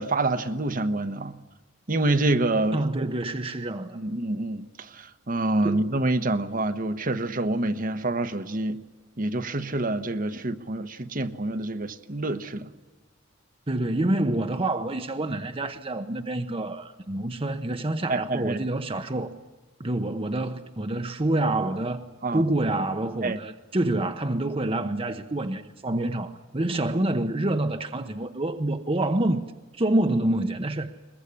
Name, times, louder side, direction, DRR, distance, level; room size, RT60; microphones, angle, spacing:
voice 1, 0.0-1.3 1.9-3.1 3.9-8.8 9.2-12.7 18.1-18.6 22.2-22.4 23.2-23.4, right 2 dB, 45° right, 1.1 m, -27 dB
voice 2, 2.7-4.0 5.6-5.9 10.3-10.4 13.7-19.3 19.8-22.0 22.3-30.9, right 1 dB, 30° right, 0.9 m, -27 dB
22.0 x 21.5 x 9.9 m
head